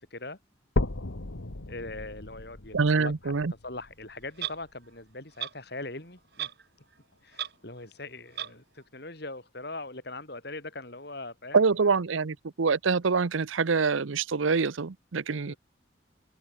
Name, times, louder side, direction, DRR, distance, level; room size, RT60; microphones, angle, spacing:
sound 1, 0.8-4.8 5.3-5.4 6.0-6.1 6.4-6.5 7.3-7.4, left 2 dB, 80° left, 1.6 m, -35 dB
voice 1, 1.7-6.5 7.2-11.7 15.5-15.6, left 2 dB, 55° left, 3.8 m, -41 dB
voice 2, 2.7-3.5 11.5-15.5, right 4 dB, 80° right, 0.7 m, -25 dB
Clock, 4.4-4.6 5.4-5.5 6.4-6.6 6.9-7.0 7.3-7.5 8.4-8.5, right 11 dB, 55° right, 2.3 m, -34 dB
head